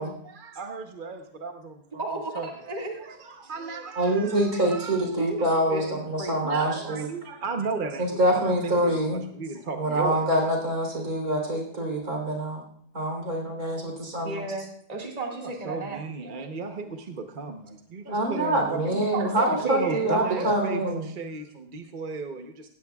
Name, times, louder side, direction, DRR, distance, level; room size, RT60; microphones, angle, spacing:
voice 1, 0.0-2.0 2.3-2.5 3.0-5.0 6.4-9.0 9.3-10.2 15.3-19.0 19.6-22.7, right 4 dB, 40° right, 5 dB, 0.8 m, -35 dB
voice 2, 2.0-3.0 3.4-3.5 5.2-6.9 14.2-16.0 19.1-20.5, right 2 dB, 25° right, -1 dB, 2.0 m, -34 dB
voice 3, 4.0-7.1 8.0-9.2 9.8-12.6 12.9-14.5 18.0-21.1, right 1 dB, 55° right, 1 dB, 3.9 m, -25 dB
17.5 x 14.5 x 2.3 m, 0.66 s
omnidirectional pair, 1.8 m